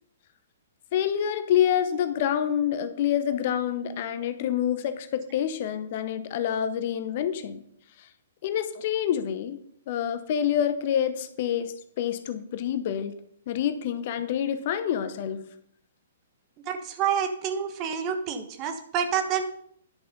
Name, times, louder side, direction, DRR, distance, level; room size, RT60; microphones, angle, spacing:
voice 1, 0.9-7.6 8.4-9.6 9.9-13.2 13.5-15.4, left 9 dB, 45° left, 11 dB, 0.9 m, -27 dB
voice 2, 16.6-19.4, right 8 dB, 30° right, 7 dB, 1.3 m, -28 dB
10.5 x 6.7 x 5.4 m, 0.65 s
figure-of-eight pair, 120°, 0 cm